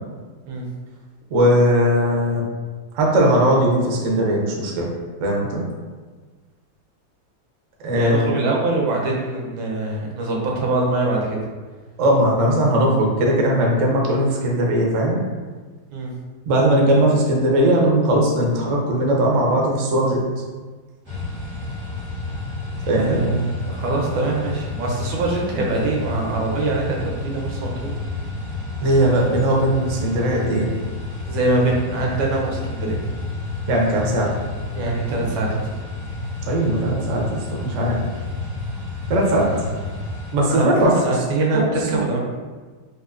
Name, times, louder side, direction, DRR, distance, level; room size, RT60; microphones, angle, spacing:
voice 1, 1.3-2.5 2.9-4.9 5.2-5.6 7.8-8.4 12.0-15.2 16.5-20.2 22.9-23.2 28.8-30.7 33.7-34.3 36.5-38.0 39.1-39.5 40.3-40.9 41.5-42.0, right 1 dB, 70° right, -1 dB, 0.7 m, -19 dB
voice 2, 7.9-11.4 15.9-16.1 22.8-27.9 31.3-33.0 34.7-35.7 39.4-39.6 40.5-42.2, right 2 dB, 90° right, -2 dB, 1.5 m, -23 dB
sound 1, 21.0-40.3, left 3 dB, 35° right, 0.4 m, -30 dB
4.4 x 2.4 x 2.4 m, 1.4 s
omnidirectional pair, 2.1 m